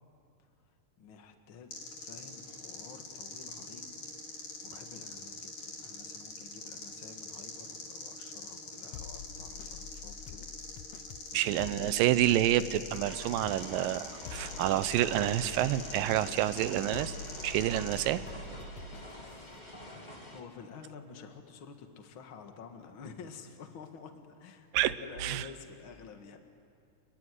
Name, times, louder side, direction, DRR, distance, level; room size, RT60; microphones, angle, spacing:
voice 1, 1.0-10.5 11.3-12.3 20.3-26.4, left 6 dB, 45° left, 5 dB, 2.1 m, -50 dB
sound 1, 1.7-18.1, left 3 dB, 65° left, 5.0 m, -44 dB
sound 2, 8.9-19.6, left 9 dB, 85° left, 1.4 m, -48 dB
voice 2, 11.3-17.2 17.4-18.2 24.7-24.9 25.2-25.5, right 13 dB, 90° right, 14 dB, 2.5 m, -28 dB
sound 3, 13.0-20.4, left 1 dB, 15° left, 2.5 m, -47 dB
28.0 x 21.5 x 10.0 m, 2.4 s
omnidirectional pair, 3.9 m